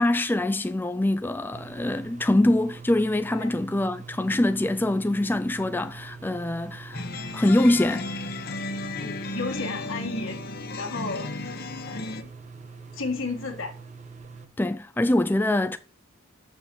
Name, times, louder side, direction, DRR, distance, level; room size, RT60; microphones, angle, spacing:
voice 1, 0.0-7.0 7.3-8.1 14.6-15.8, left 1 dB, 10° left, 0.3 m, -24 dB
sound 1, 1.5-14.5, right 4 dB, 35° right, 1.0 m, -44 dB
sound 2, 6.9-12.2, left 2 dB, 45° left, 0.9 m, -34 dB
voice 2, 9.0-10.4 10.8-11.3 11.9-12.3 12.9-13.8, left 3 dB, 70° left, 1.8 m, -33 dB
6.6 x 6.1 x 7.5 m
head